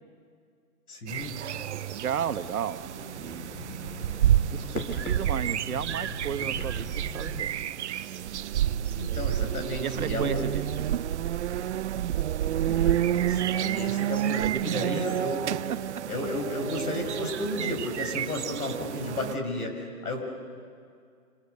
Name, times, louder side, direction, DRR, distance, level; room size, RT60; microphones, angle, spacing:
voice 1, 0.9-1.4 8.9-10.6 12.7-15.4 16.1-20.2, left 2 dB, 75° left, 4 dB, 6.8 m, -33 dB
sound 1, 1.1-19.4, right 11 dB, 50° right, 0.7 m, -29 dB
voice 2, 1.9-3.5 4.5-7.5 9.8-10.8 14.4-15.1, right 8 dB, 70° right, 11 dB, 1.4 m, -33 dB
sound 2, 2.8-7.4, left 3 dB, 60° left, 3.9 m, -40 dB
28.0 x 26.5 x 6.7 m, 2.2 s
hypercardioid pair, 145°, 45 cm